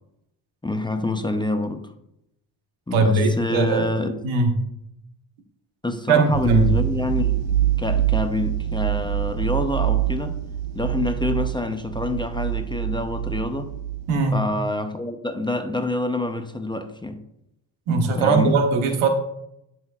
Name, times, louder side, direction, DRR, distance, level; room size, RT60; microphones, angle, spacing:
voice 1, 0.6-1.9 2.9-4.1 5.8-7.4 7.8-10.4 10.7-13.7 14.3-17.2 18.2-18.6, left 2 dB, 10° left, 7 dB, 0.5 m, -26 dB
voice 2, 2.9-3.9 4.2-4.5 6.1-6.7 14.1-14.4 17.9-19.1, right 3 dB, 90° right, 4 dB, 1.2 m, -20 dB
sound 1, 6.3-14.2, right 12 dB, 70° right, 0.7 m, -25 dB
9.3 x 5.9 x 2.4 m, 0.81 s
cardioid pair, 85°, 47 cm